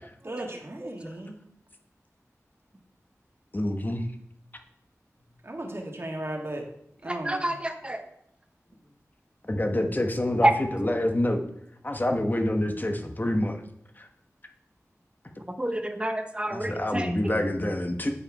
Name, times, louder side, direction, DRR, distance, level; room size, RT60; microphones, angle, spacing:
voice 1, 0.2-1.4 5.4-6.7 7.0-7.5, right 1 dB, 45° right, 1 dB, 1.7 m, -36 dB
voice 2, 3.5-4.1 9.4-11.4 11.8-13.6 14.0-14.1 16.5-18.1, left 1 dB, 35° left, 4 dB, 1.2 m, -27 dB
voice 3, 7.1-8.0 10.4-10.5 15.6-17.1, right 1 dB, 20° right, 6 dB, 0.9 m, -27 dB
8.3 x 5.3 x 4.8 m, 0.73 s
wide cardioid pair, 40°, 6 cm